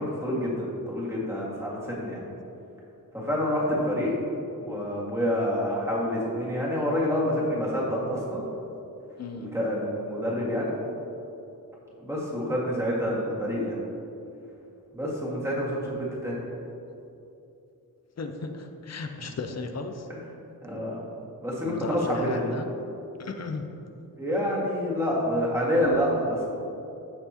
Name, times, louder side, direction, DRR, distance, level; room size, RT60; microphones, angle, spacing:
voice 1, 0.0-2.2 3.1-4.1 4.6-8.4 9.4-10.7 12.0-13.8 14.9-16.4 20.6-21.0 21.4-22.5 24.2-26.5, equal, 10° right, -6 dB, 1.9 m, -27 dB
voice 2, 9.2-9.5 18.2-20.1 21.6-22.7 23.2-23.7, left 4 dB, 45° left, 5 dB, 0.7 m, -35 dB
15.0 x 5.9 x 2.9 m, 2.8 s
wide cardioid pair, 175°, 36 cm